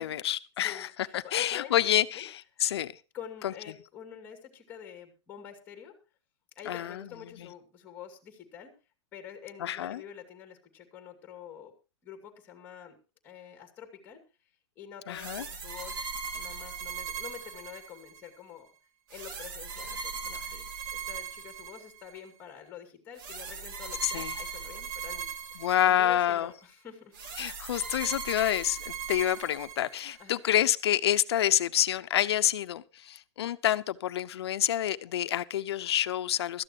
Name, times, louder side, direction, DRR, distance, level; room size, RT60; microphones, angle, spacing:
voice 1, 0.0-2.9 3.4-3.5 6.7-7.1 7.4-7.5 9.6-10.0 15.1-15.5 24.0-24.3 25.6-26.5 27.4-36.6, left 12 dB, 65° left, 13 dB, 0.9 m, -28 dB
voice 2, 0.6-1.9 2.1-2.2 2.5-2.6 3.1-5.9 6.6-8.7 9.1-11.7 12.0-13.0 13.2-14.2 14.8-18.7 19.1-27.2 30.2-30.4, left 9 dB, 15° left, 5 dB, 2.4 m, -47 dB
sound 1, 15.1-18.3 19.1-22.2 23.2-26.3 27.1-30.2, right 5 dB, 45° right, 1.9 m, -39 dB
18.0 x 13.5 x 3.0 m, 0.31 s
supercardioid pair, 170°, 15 cm